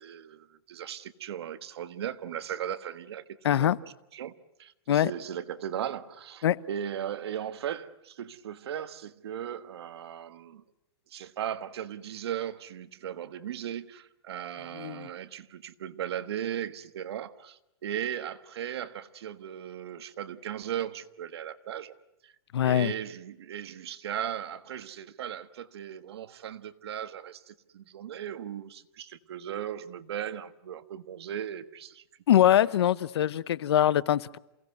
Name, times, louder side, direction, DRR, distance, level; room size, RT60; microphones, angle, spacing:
voice 1, 0.0-3.7 4.1-4.3 4.6-10.6 11.1-21.9 22.2-22.3 22.6-32.0, right 10 dB, 75° right, 1.4 m, -37 dB
voice 2, 3.4-3.8 4.9-5.1 6.4-6.6 14.8-15.1 22.5-22.9 32.3-34.4, left 11 dB, 75° left, 0.9 m, -23 dB
28.5 x 17.5 x 9.4 m
hypercardioid pair, 155°, 14 cm